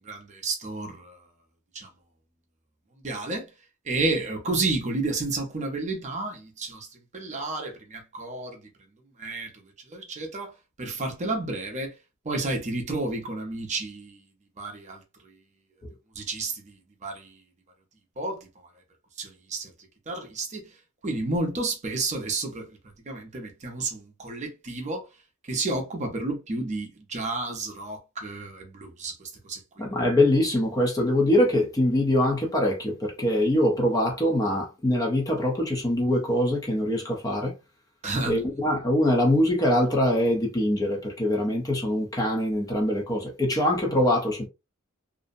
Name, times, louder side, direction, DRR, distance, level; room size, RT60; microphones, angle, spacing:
voice 1, 0.1-1.2 1.7-1.9 3.0-3.5 3.9-6.9 7.1-8.6 9.2-9.5 9.9-10.5 10.8-11.9 12.3-14.2 14.6-15.0 16.2-16.5 17.0-17.3 18.2-18.4 19.2-19.7 20.1-20.6 21.0-22.6 23.1-25.0 25.5-29.2 29.5-29.6 38.0-38.4, right 2 dB, 35° right, 0.6 m, -31 dB
voice 2, 29.8-37.5 38.3-44.5, left 1 dB, 15° left, 0.5 m, -23 dB
2.5 x 2.0 x 2.5 m
head